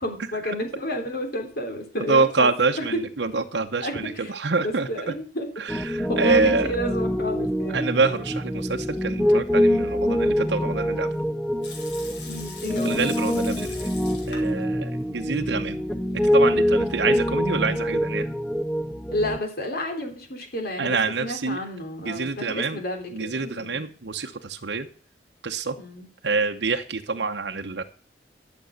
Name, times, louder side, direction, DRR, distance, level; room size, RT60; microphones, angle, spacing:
voice 1, 0.0-2.5 2.7-3.0 3.8-4.3 4.6-5.5 6.1-7.8 12.3-13.1 19.1-23.9 25.8-26.1, equal, 60° left, 4 dB, 3.3 m, -31 dB
voice 2, 2.0-4.9 5.6-6.7 7.7-11.1 12.8-13.9 14.3-15.8 16.2-18.3 20.8-21.6 22.0-22.8 23.1-24.9 25.4-25.8 26.2-27.8, right 4 dB, 75° right, 4 dB, 0.9 m, -26 dB
Piano, 5.7-19.4, equal, ahead, 0.6 m, -25 dB
Water tap faucet / Sink (filling or washing) / Liquid, 11.6-14.6 14.9-15.0 15.7-16.3, left 4 dB, 80° left, 4.1 m, -42 dB
12.0 x 7.0 x 6.4 m, 0.43 s
head